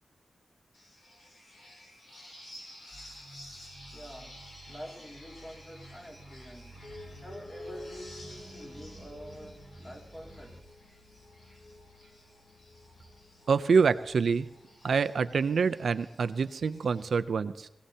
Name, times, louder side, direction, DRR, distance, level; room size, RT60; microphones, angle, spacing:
sound 1, 0.7-17.2, left 1 dB, 75° left, 5.1 m, -53 dB
sound 2, 2.9-10.6, right 2 dB, 40° right, 1.1 m, -52 dB
voice 1, 3.9-4.4 4.7-6.8 7.2-10.6, equal, 20° left, -1 dB, 2.3 m, -47 dB
sound 3, 6.8-15.3, left 1 dB, 50° left, 3.0 m, -51 dB
voice 2, 13.5-14.5 14.8-17.7, right 5 dB, 80° right, 12 dB, 0.5 m, -26 dB
21.5 x 16.5 x 2.8 m, 0.92 s
wide cardioid pair, 155°, 0 cm